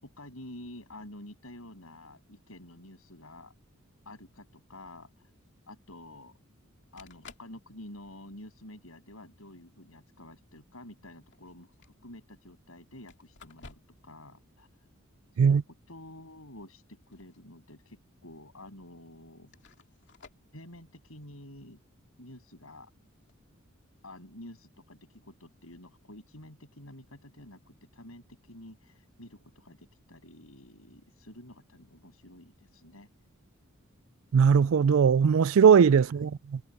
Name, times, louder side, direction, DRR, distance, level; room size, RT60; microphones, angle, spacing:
voice 1, 0.0-3.5 4.0-5.3 5.7-6.4 6.9-14.7 15.3-19.5 20.5-21.8 22.2-22.9 24.0-33.1 36.0-36.1, left 1 dB, 85° left, 7.9 m, -49 dB
sound 1, 5.4-5.5 6.7-6.8 7.0-7.6 8.0-8.4 9.4-9.5 11.2-12.0 13.1-14.1 14.4-14.5 16.8-17.5 17.9-18.0 18.8-18.9 19.5-20.5 23.1-23.3, left 4 dB, 55° left, 2.7 m, -54 dB
voice 2, 34.3-36.6, right 6 dB, 75° right, 0.4 m, -20 dB
head